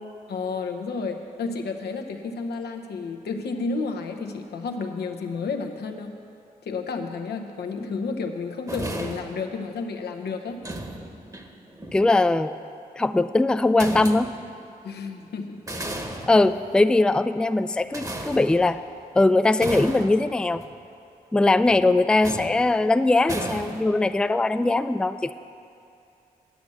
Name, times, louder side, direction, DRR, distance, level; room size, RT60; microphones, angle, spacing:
voice 1, 0.3-6.2 6.6-10.6 14.8-15.7, left 4 dB, 80° left, 4 dB, 0.8 m, -31 dB
sound 1, 8.7-9.5 10.5-12.2 13.8-14.5 15.5-17.0 17.9-19.0 19.6-20.8 21.7-21.9 22.2-22.9 23.3-24.1, right 1 dB, 20° right, 1.1 m, -35 dB
voice 2, 11.9-12.6 13.0-14.3 16.3-18.8 19.2-20.6 21.3-25.3, left 2 dB, 5° left, 11 dB, 0.3 m, -20 dB
9.3 x 6.2 x 8.4 m, 2.6 s
supercardioid pair, 45°, 17 cm